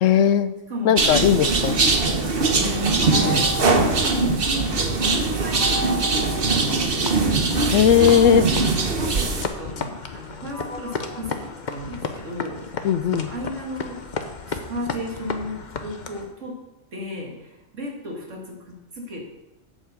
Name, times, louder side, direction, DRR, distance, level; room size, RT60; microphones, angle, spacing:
voice 1, 0.0-0.5 0.8-1.8 7.7-8.5 12.8-13.3, left 9 dB, 75° left, 12 dB, 1.0 m, -17 dB
voice 2, 0.7-1.4 2.5-7.2 8.4-14.0 14.4-16.6 16.9-19.3, left 1 dB, 65° right, 0 dB, 2.3 m, -34 dB
sound 1, 1.0-9.4, right 3 dB, 45° right, 1.2 m, -21 dB
sound 2, 3.0-4.8 5.5-7.3 8.0-12.3, left 1 dB, 5° left, 1.9 m, -36 dB
sound 3, 7.0-16.3, left 4 dB, 40° left, 0.8 m, -34 dB
8.5 x 7.3 x 6.7 m, 0.98 s
omnidirectional pair, 1.4 m